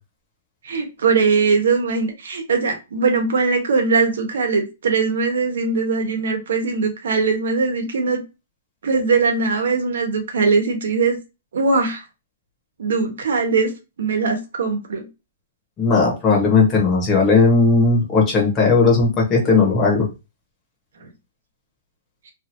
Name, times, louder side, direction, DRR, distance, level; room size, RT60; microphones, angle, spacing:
voice 1, 0.6-8.2 8.8-11.2 11.5-12.0 12.8-13.7 14.0-15.1 21.0-21.1, right 4 dB, 80° right, 3 dB, 1.0 m, -20 dB
voice 2, 15.8-20.1, left 4 dB, 20° left, -2 dB, 1.2 m, -16 dB
3.0 x 2.6 x 2.7 m, 0.26 s
hypercardioid pair, 160°, 0 cm